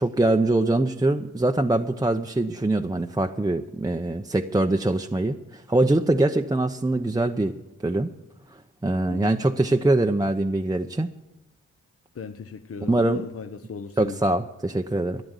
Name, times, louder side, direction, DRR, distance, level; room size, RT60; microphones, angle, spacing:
voice 1, 0.0-7.5 7.8-8.1 8.5-11.1 12.9-13.2 14.0-15.2, right 2 dB, 10° right, 0.7 m, -23 dB
voice 2, 9.1-9.4 12.1-14.3, left 5 dB, 45° left, 0.9 m, -36 dB
13.0 x 10.5 x 8.2 m
cardioid pair, 65°, 33 cm